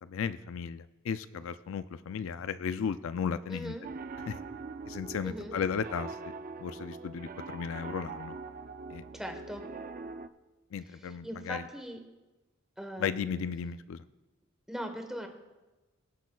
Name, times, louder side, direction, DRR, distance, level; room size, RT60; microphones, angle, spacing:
voice 1, 0.0-3.8 4.2-4.4 4.9-6.3 6.6-8.4 8.9-9.0 10.7-11.7 13.0-14.0, left 6 dB, 70° left, 13 dB, 0.4 m, -35 dB
voice 2, 3.5-3.8 5.2-5.5 9.1-9.6 11.2-12.0 12.8-13.3 14.7-15.3, equal, 5° right, 4 dB, 1.1 m, -40 dB
Piano, 3.8-10.3, right 4 dB, 40° right, 0.4 m, -43 dB
23.5 x 8.2 x 2.3 m, 1.1 s
head